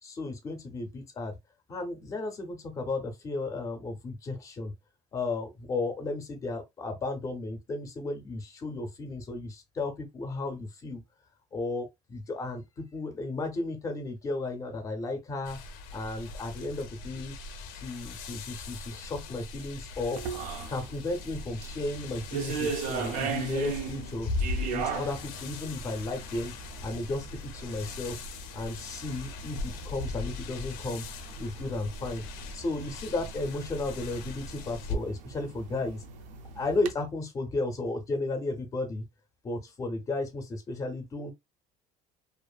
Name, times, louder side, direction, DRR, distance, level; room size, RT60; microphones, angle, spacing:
voice 1, 0.0-1.3 1.7-4.7 5.1-11.0 11.5-15.6 15.9-17.4 17.7-20.2 20.7-24.3 24.7-26.5 26.8-28.2 28.5-31.0 31.4-32.2 32.5-36.0 36.5-39.1 39.4-41.3, left 2 dB, 20° left, 0.5 m, -34 dB
sound 1, 15.4-35.0, left 3 dB, 90° left, 0.5 m, -39 dB
sound 2, 20.1-36.9, right 6 dB, 55° right, 0.4 m, -39 dB
2.5 x 2.5 x 2.2 m
cardioid pair, 175°, 15 cm